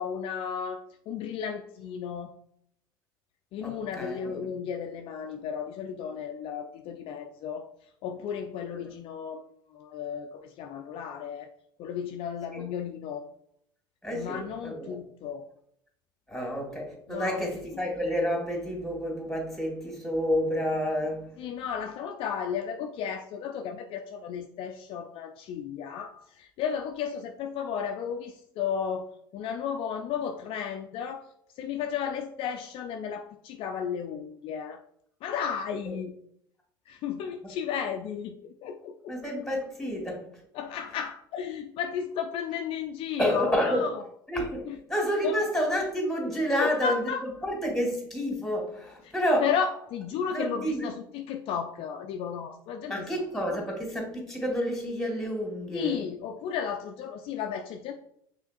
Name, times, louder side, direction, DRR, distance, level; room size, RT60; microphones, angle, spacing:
voice 1, 0.0-2.3 3.5-7.7 8.0-9.4 9.7-11.5 11.8-13.3 14.1-15.5 17.1-17.5 21.4-31.3 31.6-34.8 35.2-36.1 36.9-38.4 38.6-39.1 40.5-43.9 44.7-44.8 45.2-45.3 46.6-47.2 49.4-53.1 53.5-53.6 55.7-57.9, left 7 dB, 50° left, 5 dB, 0.4 m, -33 dB
voice 2, 3.6-4.5 12.5-12.6 14.0-15.0 16.3-21.3 35.9-36.0 37.4-37.5 39.1-40.3 43.2-43.9 44.3-44.6 44.9-47.0 47.4-49.5 50.1-50.9 52.9-56.0, equal, 5° left, 0 dB, 1.9 m, -29 dB
5.7 x 3.7 x 2.4 m, 0.69 s
hypercardioid pair, 75°, 12 cm